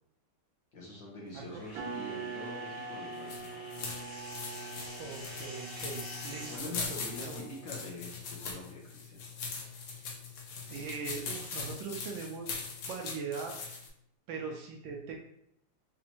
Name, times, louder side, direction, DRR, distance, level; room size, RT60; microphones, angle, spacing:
voice 1, 0.7-3.8 6.5-8.1 8.4-9.2, left 2 dB, 60° left, -3 dB, 1.2 m, -45 dB
sound 1, 0.8-6.6, left 1 dB, 25° left, 0.6 m, -48 dB
sound 2, 1.8-8.0, right 4 dB, 90° right, 1.5 m, -44 dB
sound 3, 3.1-13.9, left 5 dB, 75° left, 0.9 m, -41 dB
voice 2, 5.0-7.5 10.7-12.6 12.9-13.5 14.3-15.1, right 5 dB, 75° right, 1 dB, 1.1 m, -41 dB
4.3 x 2.5 x 2.8 m, 0.72 s
omnidirectional pair, 2.4 m